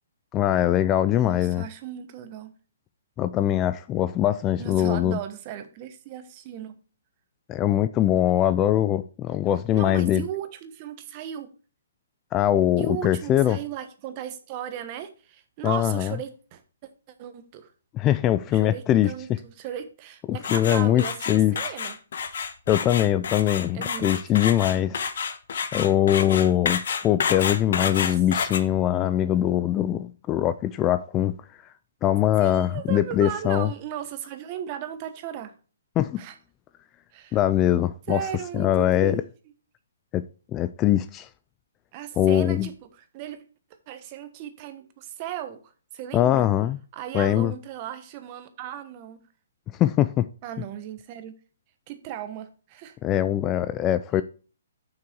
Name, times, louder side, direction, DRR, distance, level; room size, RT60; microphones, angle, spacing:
voice 1, 0.3-1.6 3.2-5.2 7.5-10.2 12.3-13.6 15.6-16.1 17.9-19.1 20.3-21.6 22.7-25.0 25.7-31.3 32.0-33.7 36.0-36.2 37.3-38.2 38.5-39.2 40.1-40.2 40.5-41.3 42.2-42.7 46.1-46.8 47.1-47.5 49.8-50.3 53.0-54.2, left 12 dB, 20° left, 0.3 m, -22 dB
voice 2, 1.2-2.5 4.6-6.8 9.7-11.5 12.8-16.6 17.2-17.7 18.5-22.0 23.7-24.9 27.7-28.2 32.4-35.5 36.2-36.4 37.1-37.4 38.1-39.2 41.9-43.4 43.9-45.6 45.9-46.5 46.9-49.2 50.4-51.3 51.9-53.0, right 10 dB, 30° right, 1.1 m, -36 dB
sound 1, 20.4-28.6, left 6 dB, 60° left, 1.2 m, -29 dB
7.4 x 5.9 x 4.5 m
hypercardioid pair, 155°, 0 cm